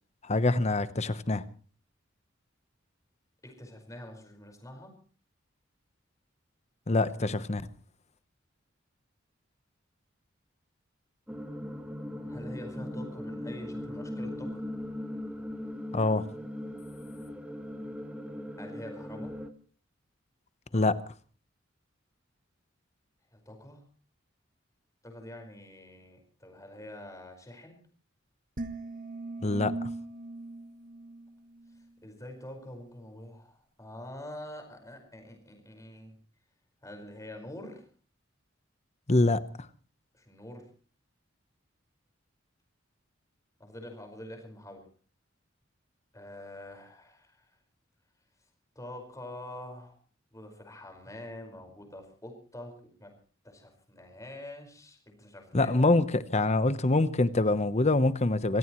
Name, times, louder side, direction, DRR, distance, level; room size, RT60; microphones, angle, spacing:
voice 1, 0.2-1.4 6.9-7.6 15.9-16.3 20.7-21.0 29.4-29.9 39.1-39.7 55.5-58.6, left 2 dB, 35° left, 0.9 m, -25 dB
voice 2, 3.4-4.9 12.3-14.6 18.6-19.3 23.3-23.8 25.0-27.8 32.0-36.1 36.8-37.8 40.1-40.7 43.6-44.9 46.1-47.5 48.7-50.0 50.3-52.7 53.0-53.1 53.4-56.0, left 1 dB, 15° left, 5.0 m, -45 dB
sound 1, 11.3-19.5, left 1 dB, 5° right, 1.5 m, -39 dB
sound 2, 28.6-31.9, right 2 dB, 45° right, 1.3 m, -40 dB
25.5 x 17.0 x 3.1 m
head